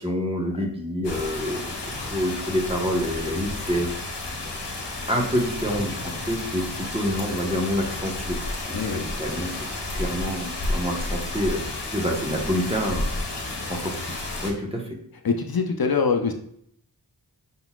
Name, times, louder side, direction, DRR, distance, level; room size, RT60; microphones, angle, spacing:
voice 1, 0.0-3.9 5.1-8.4 8.6-9.5 9.9-11.6 11.9-13.0 13.7-15.0, equal, 15° right, -1 dB, 1.1 m, -27 dB
sound 1, 1.0-14.5, left 2 dB, 85° left, 0.9 m, -31 dB
voice 2, 8.7-9.1 15.2-16.3, left 5 dB, 60° left, 4 dB, 0.6 m, -23 dB
5.8 x 3.9 x 2.3 m, 0.68 s
wide cardioid pair, 50°, 41 cm